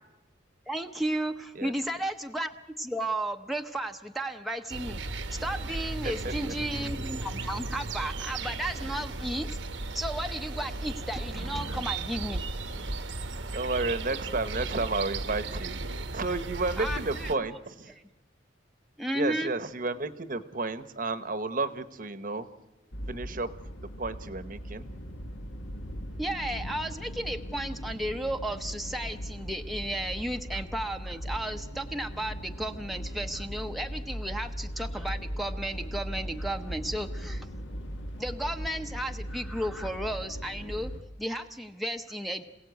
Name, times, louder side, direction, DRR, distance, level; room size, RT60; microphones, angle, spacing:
voice 1, 0.7-5.0 5.3-9.5 9.9-12.4 16.8-17.6 17.9-18.0 19.0-19.5 26.2-37.5 38.2-40.9 41.2-42.4, right 1 dB, ahead, 3 dB, 0.8 m, -34 dB
sound 1, 4.7-17.4, right 2 dB, 70° right, 1.1 m, -35 dB
voice 2, 13.5-15.8 16.1-17.9 19.1-22.5 23.1-23.5 24.0-24.9, right 3 dB, 45° right, 12 dB, 1.0 m, -32 dB
sound 2, 22.9-41.0, equal, 70° left, 1.9 m, -38 dB
27.0 x 17.0 x 8.2 m, 1.1 s
head